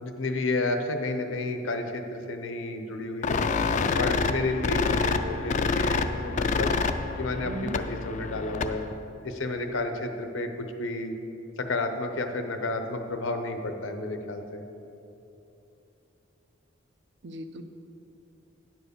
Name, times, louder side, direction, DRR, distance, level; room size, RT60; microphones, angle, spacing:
voice 1, 0.0-3.4 3.9-6.8 7.2-8.8 9.2-11.1 11.6-14.6, left 2 dB, 85° left, 6 dB, 0.8 m, -31 dB
sound 1, 3.2-8.9, left 4 dB, 40° left, 0.3 m, -27 dB
voice 2, 7.4-7.8 17.2-17.6, right 2 dB, 60° right, 8 dB, 0.6 m, -37 dB
9.9 x 4.7 x 6.7 m, 2.9 s
head